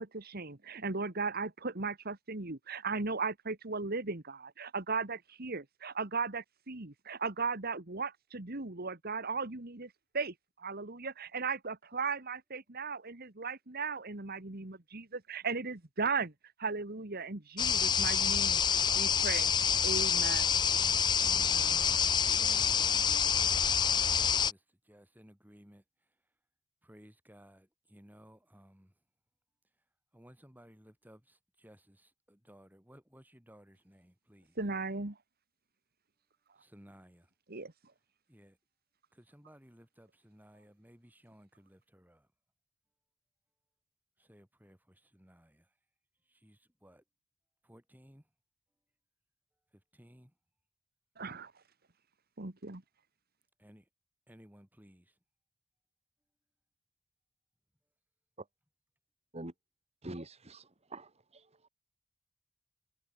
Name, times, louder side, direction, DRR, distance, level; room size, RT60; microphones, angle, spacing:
voice 1, 0.0-16.3 16.6-18.6 18.9-19.6 19.8-20.6 21.2-21.8 34.6-35.2 37.5-37.7 51.2-51.5 52.4-52.8, right 4 dB, 45° right, 1.8 m, -37 dB
sound 1, 17.6-24.5, left 7 dB, 20° left, 0.4 m, -27 dB
voice 2, 22.2-26.2 26.8-28.9 30.1-34.6 36.6-37.3 38.3-38.6 39.1-42.3 44.2-45.7 46.3-47.0 47.6-48.3 49.7-50.3 53.6-53.9 54.3-55.2, equal, 10° right, 5.6 m, -58 dB
voice 3, 60.0-61.5, right 1 dB, 30° right, 2.0 m, -45 dB
head